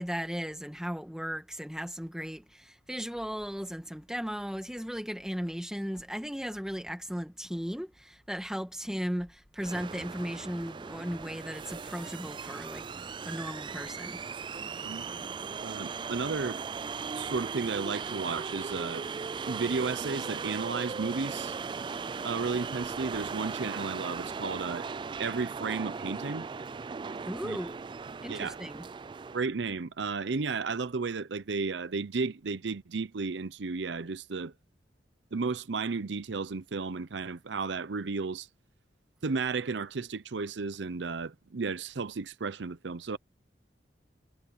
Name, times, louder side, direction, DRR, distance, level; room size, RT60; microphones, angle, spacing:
voice 1, 0.0-14.2 27.3-27.8 28.2-28.9, equal, 5° right, 2.0 m, -36 dB
sound 1, 9.6-29.5, right 5 dB, 25° right, 0.3 m, -38 dB
voice 2, 15.6-16.6 17.1-19.1 19.5-21.5 22.2-24.9 25.2-26.5 27.4-27.6 28.3-28.6 29.3-34.5 35.3-38.5 39.2-43.2, right 4 dB, 80° right, 0.7 m, -33 dB
head